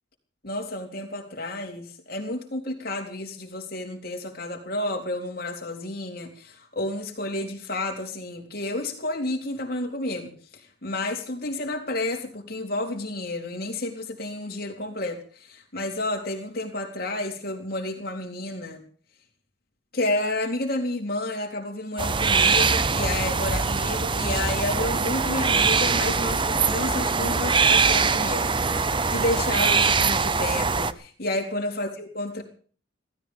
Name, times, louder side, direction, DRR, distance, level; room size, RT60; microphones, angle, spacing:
voice 1, 0.4-18.8 19.9-28.5 29.1-32.4, left 2 dB, 50° left, 2 dB, 3.9 m, -31 dB
sound 1, 22.0-30.9, right 4 dB, 25° right, 0.7 m, -22 dB
16.5 x 14.5 x 5.4 m, 0.43 s
head